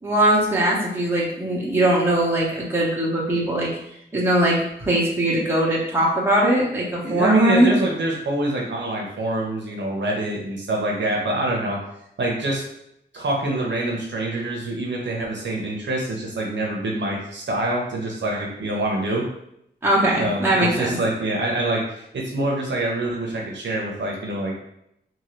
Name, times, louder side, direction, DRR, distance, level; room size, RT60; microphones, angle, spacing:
voice 1, 0.0-3.7 4.1-7.7 19.8-21.0, right 1 dB, 10° right, -5 dB, 1.1 m, -20 dB
voice 2, 7.0-11.8 12.2-12.6 13.1-19.2 20.2-24.6, right 2 dB, 70° right, -2 dB, 0.7 m, -25 dB
2.7 x 2.7 x 3.1 m, 0.76 s
cardioid pair, 70°, 19 cm